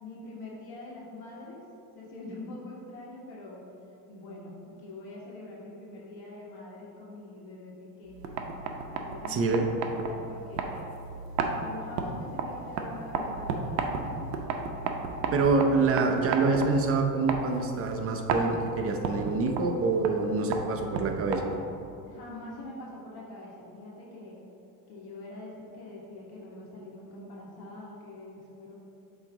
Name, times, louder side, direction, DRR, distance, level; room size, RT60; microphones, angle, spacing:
voice 1, 0.0-1.6 1.9-3.6 4.1-8.4 8.8-10.9 11.5-14.4 22.1-24.4 24.9-28.7, left 2 dB, 50° left, -4 dB, 1.5 m, -44 dB
sound 1, 8.1-21.8, right 4 dB, 85° right, 0.8 m, -34 dB
voice 2, 9.3-9.7 15.3-21.4, right 3 dB, 30° right, 3 dB, 0.6 m, -26 dB
7.3 x 3.1 x 4.7 m, 2.8 s
supercardioid pair, 105°, 49 cm